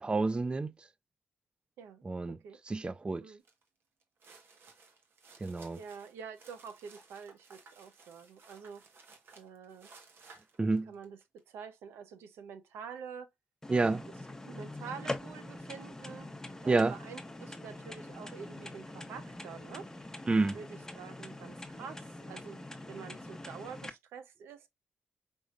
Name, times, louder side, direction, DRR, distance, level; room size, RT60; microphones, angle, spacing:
voice 1, 0.0-0.9 2.0-2.4 2.7-3.3 5.4-5.8 10.6-10.9 13.7-14.0 16.7-17.0 20.3-20.6, right 3 dB, 25° right, 0.3 m, -29 dB
voice 2, 1.8-2.6 3.2-3.4 5.8-8.8 9.4-9.9 10.9-13.3 14.4-16.3 16.6-19.9 20.5-22.6 22.9-24.7, right 6 dB, 85° right, 0.6 m, -47 dB
sound 1, 3.4-3.6 4.0-11.4, right 4 dB, 65° right, 1.2 m, -58 dB
sound 2, 13.6-23.9, left 1 dB, 10° left, 0.9 m, -44 dB
5.2 x 3.5 x 2.4 m
supercardioid pair, 55°, 4 cm